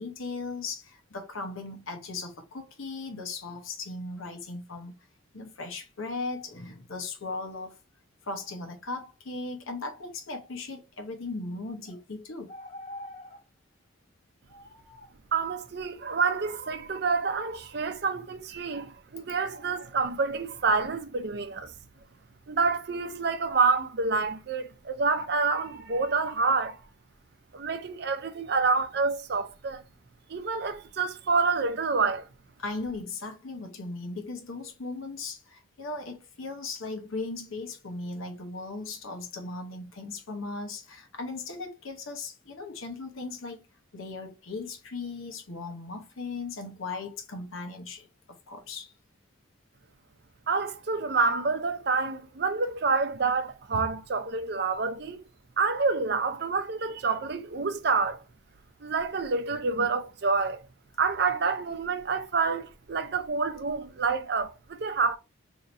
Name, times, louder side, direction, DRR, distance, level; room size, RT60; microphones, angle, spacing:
voice 1, 0.0-5.0 5.3-7.8 8.2-12.5 32.6-43.7 43.9-48.1 48.5-48.9, left 3 dB, 85° left, 0.9 m, -37 dB
sound 1, 11.9-12.0 12.5-13.4 14.5-15.1 18.8-18.9 19.5-20.1, left 1 dB, 35° left, 0.9 m, -45 dB
voice 2, 15.3-21.7 22.5-26.8 27.5-29.8 30.3-32.2 50.5-55.2 55.6-58.2 58.8-60.6 61.0-65.2, right 4 dB, 55° right, 0.5 m, -28 dB
2.8 x 2.6 x 4.2 m
head